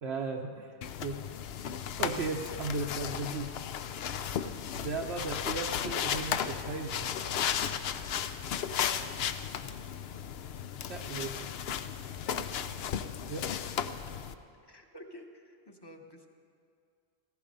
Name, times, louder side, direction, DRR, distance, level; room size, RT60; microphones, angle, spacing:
voice 1, 0.0-0.8 1.0-1.2 2.0-3.7 4.7-7.1 10.9-11.6 13.3-13.5, right 3 dB, 85° right, 0 dB, 1.0 m, -36 dB
sound 1, 0.8-14.3, left 8 dB, 75° left, 0.8 m, -35 dB
voice 2, 8.9-9.6 12.2-12.4 14.6-16.3, equal, 25° left, 4 dB, 1.1 m, -51 dB
15.5 x 14.5 x 5.3 m, 2.4 s
omnidirectional pair, 1.1 m